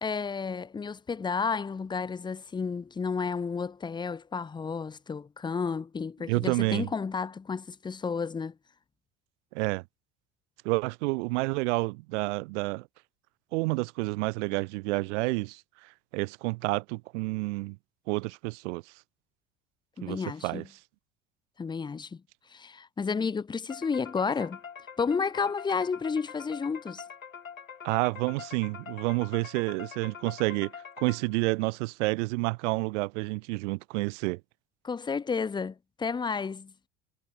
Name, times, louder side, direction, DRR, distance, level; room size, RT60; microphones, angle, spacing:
voice 1, 0.0-8.5 20.0-20.7 21.6-22.2 22.5-24.6 25.0-27.0 34.8-36.7, left 5 dB, 10° left, 0.5 m, -31 dB
voice 2, 6.3-6.9 9.5-9.8 10.6-12.9 13.5-17.8 18.1-18.8 20.0-20.6 27.8-34.4, right 25 dB, 60° right, 0.8 m, -29 dB
sound 1, 23.7-31.6, left 7 dB, 85° left, 2.0 m, -45 dB
figure-of-eight pair, 65°, 40 cm